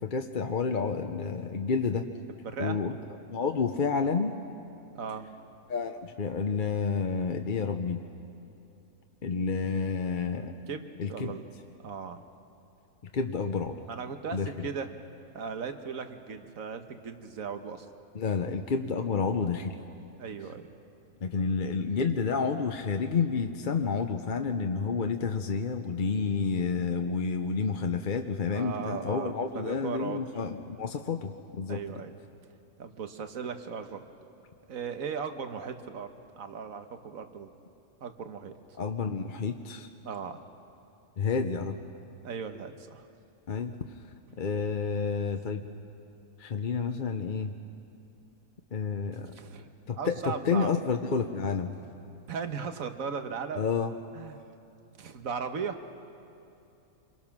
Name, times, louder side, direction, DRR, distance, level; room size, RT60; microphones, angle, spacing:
voice 1, 0.0-2.1 2.6-3.0 3.3-4.3 5.7-8.0 9.2-10.5 11.0-11.4 13.1-13.8 14.3-14.7 18.1-19.8 21.2-31.8 38.8-39.9 41.2-41.8 43.5-43.7 44.4-45.6 46.4-47.5 48.7-49.3 49.9-51.7 53.6-53.9, left 5 dB, 45° left, 6 dB, 0.8 m, -30 dB
voice 2, 2.4-2.8 4.9-5.3 10.7-11.5 11.8-12.2 13.9-14.9 15.3-17.9 20.2-20.7 28.5-30.2 31.7-32.2 32.8-34.0 34.7-37.5 38.0-38.5 40.0-40.4 42.2-43.1 49.3-49.7 50.0-50.7 52.3-53.6 54.1-54.5 55.0-55.8, right 6 dB, 80° right, 7 dB, 1.6 m, -37 dB
27.0 x 22.5 x 6.0 m, 2.8 s
omnidirectional pair, 1.4 m